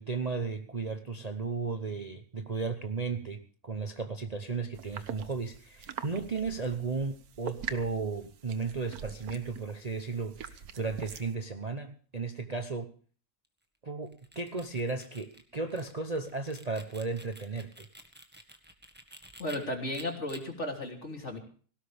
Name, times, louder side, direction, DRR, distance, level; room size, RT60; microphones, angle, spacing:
voice 1, 0.0-12.9 13.8-17.9, right 4 dB, 30° right, 6 dB, 0.9 m, -35 dB
sound 1, 4.7-11.3, right 8 dB, 80° right, 1.5 m, -44 dB
sound 2, 14.1-19.6 19.9-20.4, right 1 dB, 5° right, 1.5 m, -51 dB
voice 2, 19.4-21.4, left 1 dB, 50° left, 2 dB, 3.6 m, -35 dB
18.5 x 16.5 x 3.5 m, 0.43 s
omnidirectional pair, 1.6 m